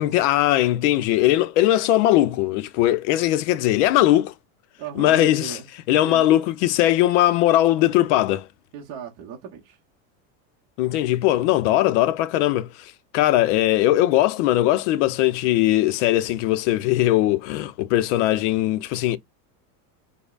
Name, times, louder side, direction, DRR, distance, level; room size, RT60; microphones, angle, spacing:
voice 1, 0.0-4.3 5.0-5.6 5.9-8.5 10.8-19.2, left 14 dB, 60° left, 0.5 m, -20 dB
voice 2, 4.8-5.7 6.0-6.3 8.7-9.8, right 8 dB, 40° right, 0.9 m, -37 dB
5.1 x 2.1 x 2.3 m
cardioid pair, 170°, 41 cm